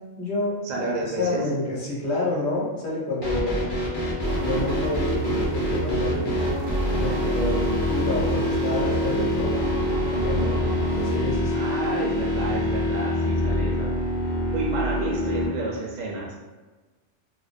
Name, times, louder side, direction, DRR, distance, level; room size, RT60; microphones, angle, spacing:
voice 1, 0.0-3.7 4.4-6.4 6.9-9.5 10.1-10.6 11.0-11.7, left 2 dB, 50° left, -5 dB, 0.8 m, -29 dB
voice 2, 0.6-1.5 11.5-14.0 14.5-16.4, right 2 dB, 65° right, -2 dB, 0.4 m, -30 dB
sound 1, 3.2-15.5, left 1 dB, 35° left, 0.4 m, -25 dB
sound 2, 4.2-11.2, right 3 dB, 90° right, 1.0 m, -30 dB
2.4 x 2.1 x 2.5 m, 1.2 s
omnidirectional pair, 1.3 m